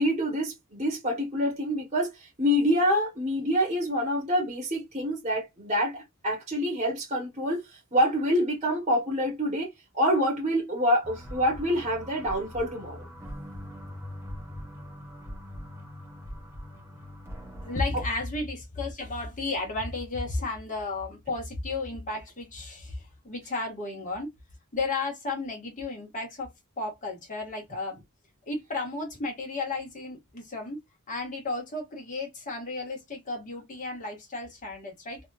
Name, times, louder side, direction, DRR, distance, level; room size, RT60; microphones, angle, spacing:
voice 1, 0.0-2.1 2.4-7.6 7.9-9.7 9.9-13.1, equal, 30° right, 1.2 m, -26 dB
sound 1, 11.0-17.8, equal, 10° right, 0.9 m, -42 dB
voice 2, 17.6-24.3 24.7-28.0 28.5-30.8 31.1-35.2, left 3 dB, 35° left, 1.5 m, -33 dB
3.4 x 2.7 x 2.4 m
head